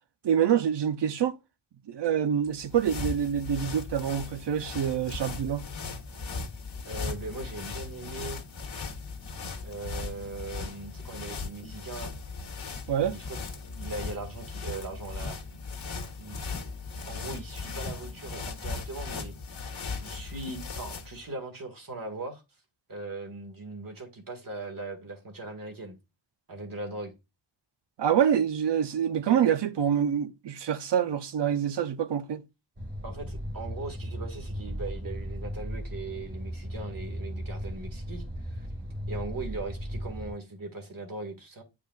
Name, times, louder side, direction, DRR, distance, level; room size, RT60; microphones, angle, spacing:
voice 1, 0.2-1.4 1.9-5.6 12.9-13.2 28.0-32.4, right 8 dB, 65° right, 0.7 m, -26 dB
sound 1, 2.5-21.2, left 4 dB, 75° left, 1.6 m, -38 dB
voice 2, 6.8-8.4 9.6-12.2 13.0-13.4 13.7-15.4 16.2-16.7 17.1-19.3 19.9-22.4 22.9-26.0 26.5-27.2 33.0-38.7 39.1-41.6, right 2 dB, 45° right, 1.9 m, -39 dB
engineroom background atmosphere, 32.8-40.3, equal, 25° right, 1.6 m, -36 dB
9.3 x 4.9 x 2.4 m
wide cardioid pair, 130°, 46 cm